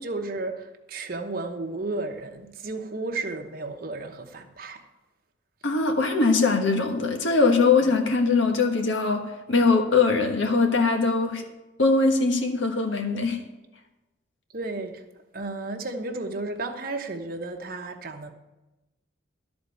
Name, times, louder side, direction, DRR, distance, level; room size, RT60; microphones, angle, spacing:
voice 1, 0.0-4.8 14.5-15.0 15.3-18.3, right 2 dB, 50° right, 1.0 m, -33 dB
voice 2, 5.6-11.4 11.8-13.4, left 4 dB, 70° left, 1.4 m, -22 dB
13.0 x 4.4 x 8.3 m
head